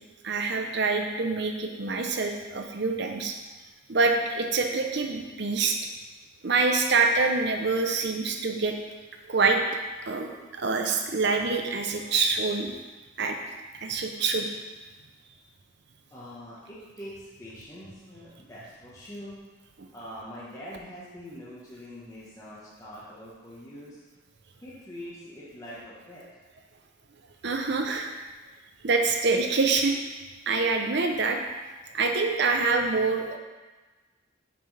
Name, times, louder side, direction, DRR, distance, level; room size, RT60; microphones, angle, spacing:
voice 1, 0.2-3.3 3.9-5.8 6.4-8.7 9.3-9.6 10.1-12.7 13.2-13.4 13.8-14.5 27.4-28.1 28.8-29.9 30.5-31.4 31.9-33.4, right 4 dB, 55° right, 4 dB, 0.7 m, -25 dB
voice 2, 16.1-19.4 19.9-24.0 24.6-26.2, equal, 15° left, -9 dB, 1.2 m, -43 dB
7.0 x 6.0 x 3.3 m, 1.3 s
head